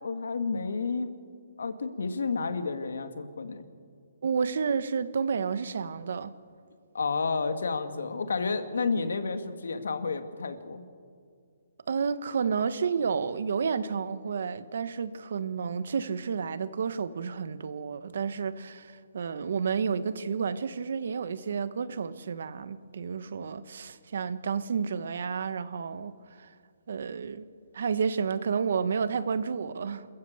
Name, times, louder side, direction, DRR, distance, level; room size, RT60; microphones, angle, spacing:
voice 1, 0.0-1.1 1.6-3.7 6.9-10.8, left 4 dB, 80° left, 2.0 m, -31 dB
voice 2, 4.2-6.3 11.9-26.1 26.4-26.5 26.9-27.5 27.7-30.1, right 6 dB, 60° right, 1.2 m, -30 dB
27.0 x 14.5 x 8.1 m
hypercardioid pair, 170°, 0 cm